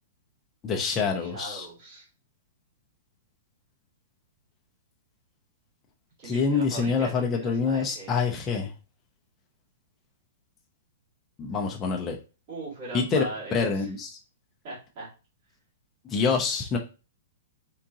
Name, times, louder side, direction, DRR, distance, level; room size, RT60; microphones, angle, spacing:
voice 1, 0.6-1.7 6.2-8.7 11.4-12.2 12.9-13.3 13.5-14.2 16.1-16.8, left 5 dB, 15° left, 0 dB, 0.5 m, -26 dB
voice 2, 1.2-2.1 6.2-8.2 12.5-13.9 14.6-15.1, right 2 dB, 40° right, -7 dB, 2.2 m, -39 dB
3.7 x 3.6 x 2.8 m, 0.32 s
hypercardioid pair, 165°, 0 cm